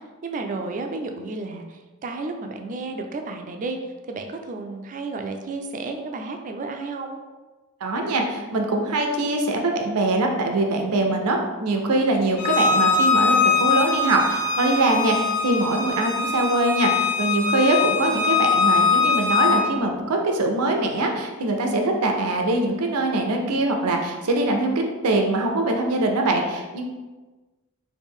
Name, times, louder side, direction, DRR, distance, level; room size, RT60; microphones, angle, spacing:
voice 1, 0.0-3.8 4.1-7.2, right 3 dB, 35° right, 5 dB, 0.3 m, -32 dB
voice 2, 7.8-26.8, right 2 dB, 90° right, 3 dB, 0.5 m, -23 dB
Bowed string instrument, 12.4-19.6, left 5 dB, 80° left, 0.5 m, -22 dB
3.1 x 2.6 x 3.5 m, 1.2 s
head